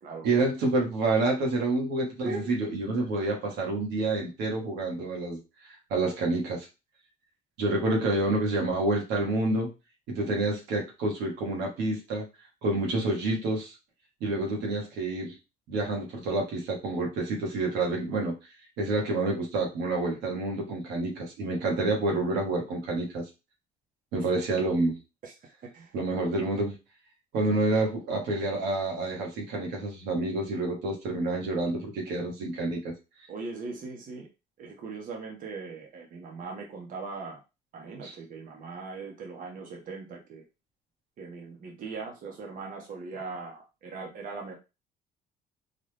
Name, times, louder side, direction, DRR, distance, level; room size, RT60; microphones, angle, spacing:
voice 1, 0.2-5.4 5.9-6.7 7.6-9.7 10.1-12.3 12.6-13.7 14.2-15.3 15.7-18.4 18.8-23.3 24.1-25.0 25.9-26.7 27.3-32.9 38.0-38.1, right 2 dB, 90° right, 1 dB, 1.6 m, -28 dB
voice 2, 2.2-2.5 25.2-25.3 25.7-25.9 33.3-34.3 34.6-37.4 37.7-40.4 41.2-44.5, right 4 dB, 55° right, 0 dB, 1.1 m, -39 dB
4.1 x 2.5 x 3.4 m, 0.27 s
cardioid pair, 110°, 17 cm